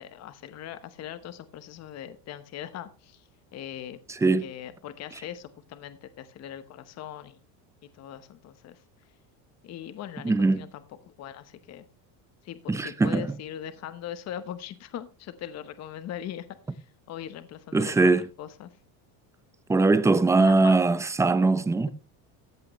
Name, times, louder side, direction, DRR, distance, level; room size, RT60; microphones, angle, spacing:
voice 1, 0.0-4.0 4.4-7.4 7.9-8.8 9.6-11.9 12.4-18.1 18.4-18.7 20.4-20.8, left 10 dB, 35° left, 1.0 m, -40 dB
voice 2, 4.1-4.5 10.2-10.7 12.7-13.3 17.7-18.3 19.7-21.9, right 3 dB, 5° right, 0.5 m, -21 dB
14.5 x 8.6 x 3.1 m
cardioid pair, 150°, 44 cm